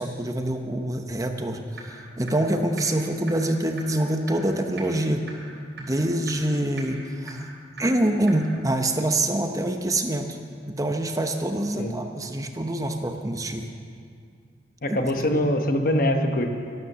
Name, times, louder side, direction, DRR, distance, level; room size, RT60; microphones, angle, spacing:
voice 1, 0.0-5.2 5.8-7.5 7.8-10.4 10.7-13.7 14.9-15.4, right 1 dB, 20° right, 5 dB, 0.8 m, -26 dB
sound 1, 1.8-1.9 2.3-2.4 2.8-2.9 3.3-3.4 3.8-3.9 4.3-4.4 4.8-4.9 5.3-5.4 5.8-5.9 6.3-6.4 6.8-6.9 7.3-7.4 7.8-7.9 8.3-8.4, right 4 dB, 70° right, 4.5 m, -38 dB
voice 2, 14.8-16.5, left 1 dB, 50° left, 5 dB, 1.2 m, -23 dB
12.5 x 12.0 x 6.8 m, 2.2 s
head